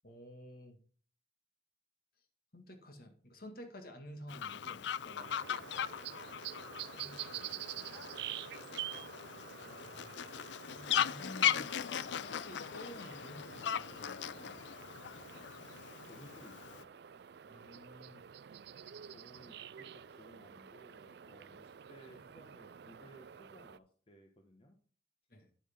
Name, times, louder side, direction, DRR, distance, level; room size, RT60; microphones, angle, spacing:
voice 1, 0.0-0.8 2.5-5.3 6.9-7.9 9.6-10.2 10.5-14.6 17.5-18.3 25.3-25.5, equal, 50° left, 5 dB, 2.1 m, -52 dB
Fowl, 4.3-16.8, left 9 dB, 70° left, 0.4 m, -38 dB
sound 1, 5.2-23.8, right 10 dB, 60° right, 0.4 m, -48 dB
voice 2, 5.5-5.9 16.0-16.9 19.0-24.8, equal, 30° left, 3 dB, 1.1 m, -59 dB
9.7 x 8.1 x 3.7 m, 0.43 s
head